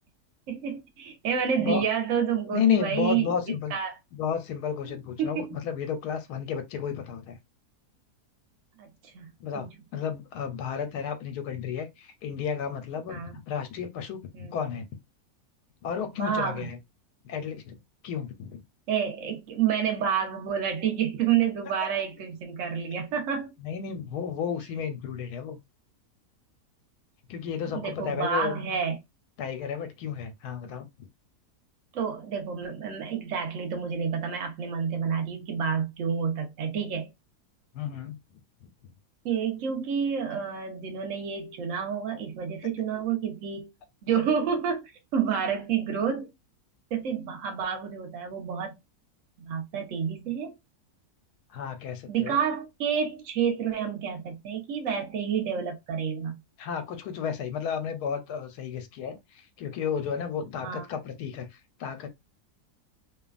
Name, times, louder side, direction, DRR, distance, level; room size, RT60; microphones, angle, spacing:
voice 1, 0.5-3.9 4.8-4.9 5.2-5.5 8.8-9.3 9.5-9.7 13.1-13.3 14.3-14.5 16.1-16.7 18.9-23.5 27.7-29.0 31.9-37.1 39.2-43.7 44.0-46.3 46.9-48.8 49.4-50.5 52.1-56.4 60.6-60.9, right 7 dB, 60° right, 1.1 m, -29 dB
voice 2, 2.5-3.7 4.1-7.4 9.4-14.9 15.8-16.8 17.2-17.8 18.0-18.6 23.6-25.6 27.3-28.5 29.4-31.1 37.7-38.2 51.5-52.4 56.6-62.1, left 7 dB, 80° left, 1.2 m, -32 dB
3.1 x 2.3 x 2.4 m
omnidirectional pair, 1.7 m